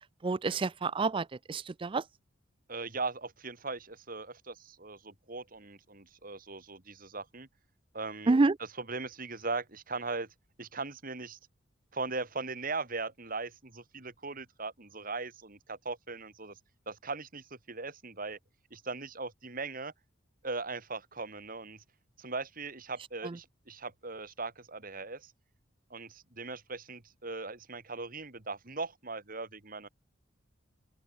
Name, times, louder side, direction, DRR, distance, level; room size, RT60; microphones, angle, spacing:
voice 1, 0.2-2.0 8.3-8.5, right 3 dB, 25° right, 0.4 m, -28 dB
voice 2, 2.7-7.5 7.9-8.3 8.6-10.3 10.6-11.4 11.9-16.5 16.9-18.4 18.7-19.9 20.4-21.8 22.2-25.3 25.9-29.9, right 3 dB, 45° right, 3.5 m, -39 dB
head